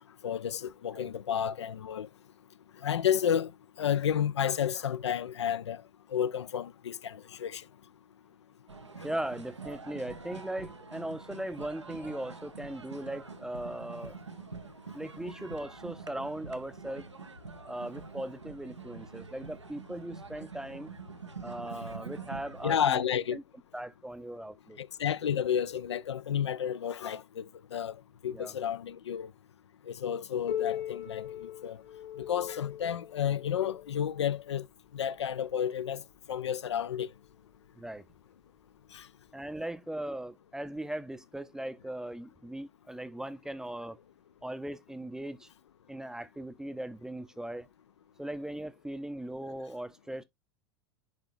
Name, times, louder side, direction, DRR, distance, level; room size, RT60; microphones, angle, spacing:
voice 1, 0.2-2.1 2.8-3.5 3.8-5.8 6.1-7.6 22.6-23.4 24.8-27.4 27.7-28.0 28.2-29.3 29.9-31.8 32.2-34.7 34.9-36.0 36.3-37.1 38.9-39.1, left 9 dB, 75° left, 0.4 m, -31 dB
sound 1, 8.7-22.8, right 4 dB, 90° right, 0.7 m, -45 dB
voice 2, 9.0-14.2 14.9-17.1 17.7-20.9 21.4-23.0 23.3-23.4 23.7-24.8 28.3-28.5 37.8-38.0 39.3-44.0 44.4-45.5 45.9-47.7 48.2-50.2, right 1 dB, 5° right, 0.5 m, -39 dB
Piano, 30.5-35.8 36.7-36.8 37.3-37.4 38.1-38.2 39.3-39.4, left 10 dB, 45° left, 1.2 m, -40 dB
10.5 x 3.7 x 2.4 m
figure-of-eight pair, 85°, 15 cm